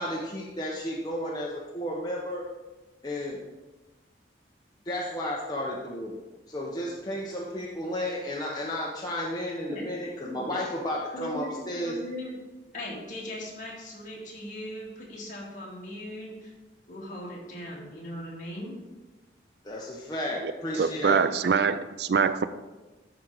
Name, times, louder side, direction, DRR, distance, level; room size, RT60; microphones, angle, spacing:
voice 1, 0.0-2.4 3.0-3.4 4.9-6.2 6.5-12.0 19.6-21.3, left 1 dB, 20° left, -4 dB, 0.8 m, -33 dB
voice 2, 10.2-10.5 11.1-12.3 12.7-16.5 16.9-18.7, equal, 45° left, -4 dB, 2.1 m, -39 dB
voice 3, 20.4-22.5, right 6 dB, 70° right, 13 dB, 0.4 m, -25 dB
12.5 x 4.4 x 4.0 m, 1.2 s
head